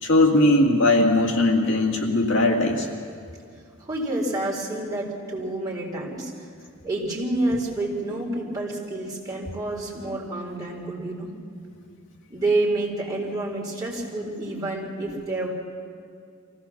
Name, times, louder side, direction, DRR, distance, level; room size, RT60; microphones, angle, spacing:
voice 1, 0.0-2.9, left 1 dB, 60° left, 1 dB, 2.0 m, -19 dB
voice 2, 3.9-6.3 6.8-11.3 12.3-15.5, right 2 dB, 15° right, -5 dB, 4.1 m, -28 dB
24.0 x 16.5 x 7.2 m, 2.3 s
head